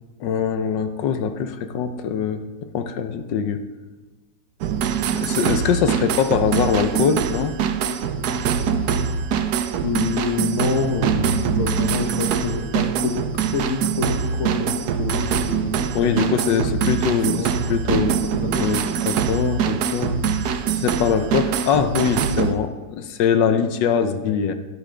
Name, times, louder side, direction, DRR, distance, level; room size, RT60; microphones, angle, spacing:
voice 1, 0.2-3.6 5.2-7.6 15.9-17.4 17.7-18.2 18.4-24.5, left 7 dB, 80° left, 9 dB, 1.4 m, -23 dB
sound 1, 4.6-22.5, right 7 dB, 70° right, 1.1 m, -23 dB
voice 2, 9.3-16.3 16.7-17.7 18.4-18.8, left 4 dB, 50° left, 5 dB, 1.3 m, -27 dB
15.5 x 10.0 x 3.3 m, 1.3 s
omnidirectional pair, 1.9 m